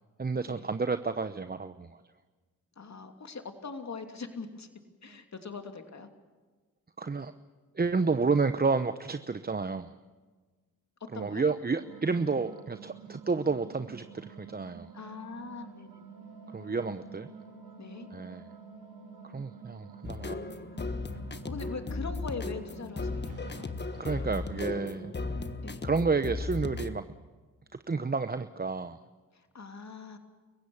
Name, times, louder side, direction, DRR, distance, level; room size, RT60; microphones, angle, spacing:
voice 1, 0.2-2.0 5.1-5.2 7.0-7.3 7.7-9.9 11.1-14.9 16.5-17.3 18.1-18.5 19.2-20.5 23.9-25.1 25.8-27.1 27.9-29.0, right 4 dB, 25° right, 10 dB, 0.9 m, -30 dB
voice 2, 2.8-4.7 5.0-6.1 11.1-11.4 14.9-16.0 17.8-18.1 21.5-23.7 25.6-25.8 29.3-30.2, left 4 dB, 45° left, 5 dB, 2.8 m, -41 dB
sound 1, 11.8-25.1, right 8 dB, 80° right, 2.5 m, -50 dB
Wind instrument woodwind instrument, 16.1-21.6, left 6 dB, 85° left, 5.8 m, -57 dB
sound 2, 20.0-27.0, left 3 dB, 30° left, 1.4 m, -36 dB
29.0 x 16.0 x 7.2 m, 1.3 s
supercardioid pair, 50°, 37 cm